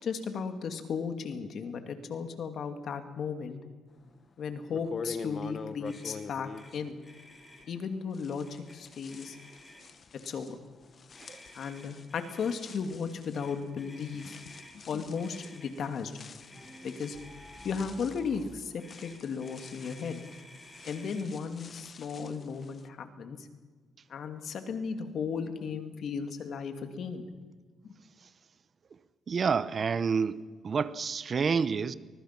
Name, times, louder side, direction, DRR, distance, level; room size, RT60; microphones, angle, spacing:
voice 1, 0.0-3.6 4.4-7.0 7.7-9.4 10.3-10.6 11.5-14.4 14.9-16.1 16.8-17.2 17.6-18.7 19.0-20.2 20.9-23.4 24.1-27.3, left 6 dB, 60° left, 2.5 m, -35 dB
sound 1, 4.1-4.2 4.7-7.8 8.1-22.9, left 5 dB, 45° left, 1.3 m, -46 dB
Motor vehicle (road), 5.8-6.2 6.5-6.7 7.0-7.7 8.4-8.8 9.1-10.0 11.1-12.6 13.3-14.8 15.2-15.7 16.4-17.7 18.8-21.3, left 1 dB, 15° left, 5.1 m, -53 dB
sound 2, 16.5-18.7, right 2 dB, 5° right, 6.0 m, -51 dB
voice 2, 29.3-31.9, right 5 dB, 45° right, 0.9 m, -29 dB
24.0 x 21.0 x 6.1 m
cardioid pair, 90°, 0 cm